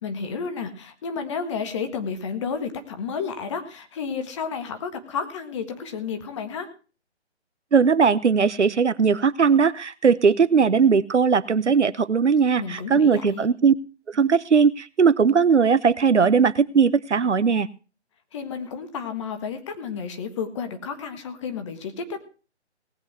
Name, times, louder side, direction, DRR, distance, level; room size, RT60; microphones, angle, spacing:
voice 1, 0.0-6.7 12.6-13.5 18.3-22.2, left 6 dB, 25° left, 7 dB, 1.6 m, -31 dB
voice 2, 7.7-13.7 14.1-17.7, right 6 dB, 80° right, 16 dB, 0.9 m, -19 dB
18.5 x 8.3 x 4.7 m, 0.35 s
figure-of-eight pair, 150°, 34 cm